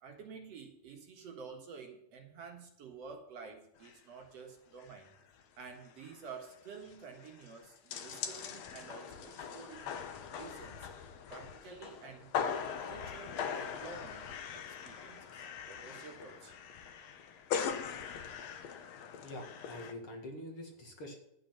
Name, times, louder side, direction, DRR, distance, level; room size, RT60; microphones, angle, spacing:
voice 1, 0.0-5.1 5.6-9.9 10.3-10.9 11.3-12.3 12.8-14.3 14.5-16.5, right 5 dB, 60° right, 2 dB, 2.4 m, -50 dB
sound 1, 3.8-4.0 4.3-4.4 4.8-5.1 5.4-5.5 5.8-19.9, left 7 dB, 65° left, 2.1 m, -41 dB
voice 2, 19.2-21.1, left 1 dB, 45° left, 2 dB, 2.5 m, -45 dB
12.0 x 9.0 x 5.8 m, 0.80 s
omnidirectional pair, 3.6 m